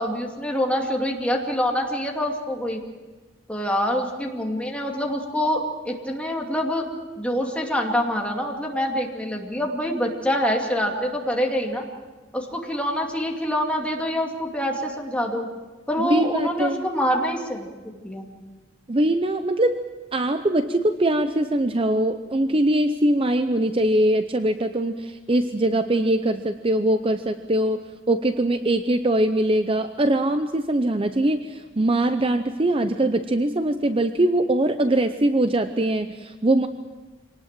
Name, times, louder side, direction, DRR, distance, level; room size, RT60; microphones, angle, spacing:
voice 1, 0.0-2.8 3.5-6.9 7.2-11.8 12.3-15.4 15.9-18.3, equal, 5° left, 0 dB, 2.5 m, -25 dB
voice 2, 16.0-16.8 18.9-19.8 20.1-36.7, right 1 dB, 25° right, 9 dB, 0.6 m, -22 dB
24.5 x 19.0 x 7.6 m, 1.3 s
head